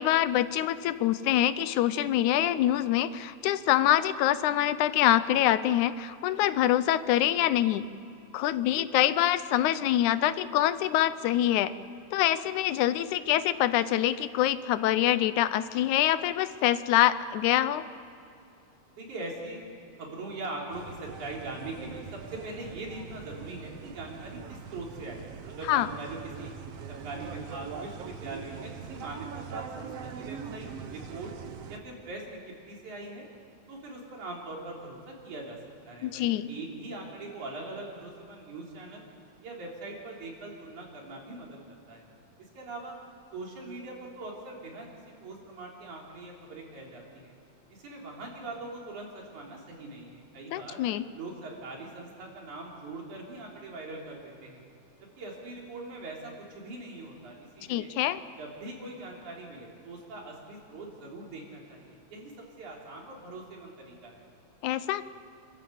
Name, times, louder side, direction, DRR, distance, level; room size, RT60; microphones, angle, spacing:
voice 1, 0.0-7.8 8.3-11.7 12.1-17.8 25.7-25.9 36.0-36.5 50.5-51.0 57.7-58.2 64.6-65.0, left 13 dB, 80° left, 14 dB, 2.1 m, -25 dB
voice 2, 19.0-19.6 20.0-26.5 26.9-31.3 31.7-33.3 33.7-35.6 35.8-39.0 39.4-42.1 42.5-43.0 43.3-47.3 47.7-50.8 51.1-54.6 55.2-57.9 58.4-62.3 62.6-64.2, right 2 dB, 80° right, -2 dB, 4.9 m, -42 dB
sound 1, 20.7-31.8, right 6 dB, 60° right, 1.9 m, -42 dB
28.0 x 13.5 x 8.1 m, 2.5 s
omnidirectional pair, 3.4 m